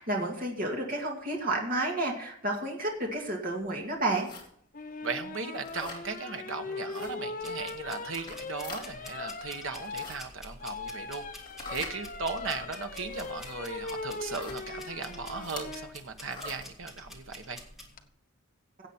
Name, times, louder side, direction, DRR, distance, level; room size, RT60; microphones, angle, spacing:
voice 1, 0.0-4.3, right 2 dB, 40° right, 0 dB, 2.3 m, -31 dB
sound 1, 4.2-4.5 5.6-6.0 6.9-7.1 8.1-8.8 9.7-10.2 11.4-12.0 13.1-13.5 14.2-14.6 15.4-15.7 16.2-16.7, left 3 dB, 20° left, 2.6 m, -43 dB
sound 2, 4.7-15.9 17.6-18.0, left 3 dB, 40° left, 0.9 m, -40 dB
voice 2, 5.0-11.2 11.7-17.6, right 4 dB, 60° right, 7 dB, 1.2 m, -37 dB
sound 3, 7.4-17.9, left 1 dB, ahead, 1.8 m, -49 dB
16.5 x 8.1 x 4.4 m, 0.67 s
head